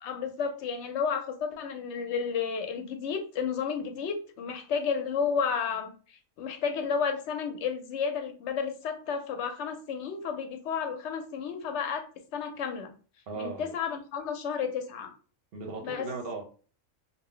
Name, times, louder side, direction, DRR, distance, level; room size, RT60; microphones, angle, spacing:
voice 1, 0.0-12.9 13.3-15.1 15.8-16.1, left 6 dB, 65° left, 6 dB, 0.8 m, -32 dB
voice 2, 13.3-13.7 15.5-16.4, right 4 dB, 55° right, 2 dB, 0.8 m, -37 dB
2.6 x 2.0 x 3.7 m, 0.38 s
omnidirectional pair, 1.4 m